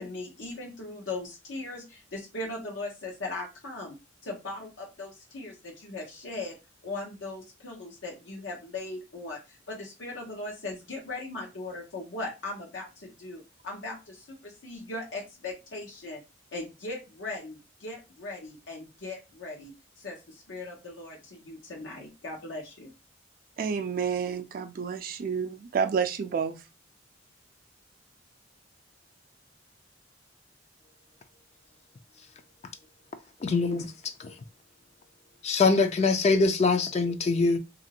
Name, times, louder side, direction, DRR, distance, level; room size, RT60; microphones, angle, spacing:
voice 1, 0.0-4.0 4.2-6.6 6.8-16.2 16.5-22.9, left 2 dB, 85° left, 0.8 m, -39 dB
voice 2, 23.6-26.6, right 6 dB, 50° right, 0.3 m, -29 dB
voice 3, 33.4-33.9 35.4-37.6, left 4 dB, 35° left, 0.3 m, -23 dB
2.9 x 2.5 x 2.8 m
head